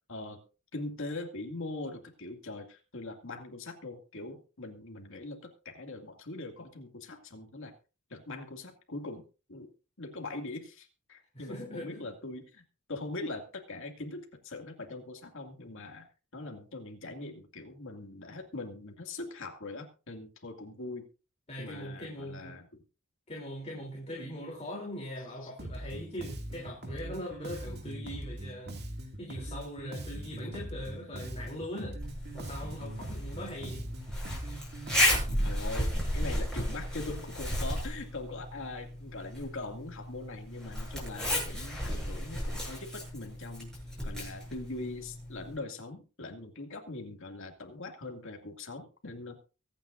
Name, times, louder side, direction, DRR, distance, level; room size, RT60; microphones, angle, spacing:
voice 1, 0.1-0.4 0.7-7.7 8.1-9.7 10.0-12.6 12.9-16.1 16.3-21.1 21.6-22.8 35.4-43.7 44.0-49.4, left 2 dB, 65° left, 3 dB, 2.4 m, -42 dB
voice 2, 11.3-12.0 21.5-22.6 23.3-28.8 29.2-32.0 32.3-33.9, equal, 30° left, -2 dB, 3.4 m, -41 dB
Bass guitar, 25.6-35.5, right 1 dB, 50° right, 2.4 m, -41 dB
Zipper (clothing), 32.0-45.6, left 1 dB, 5° left, 7.8 m, -34 dB
23.5 x 9.4 x 2.6 m, 0.34 s
head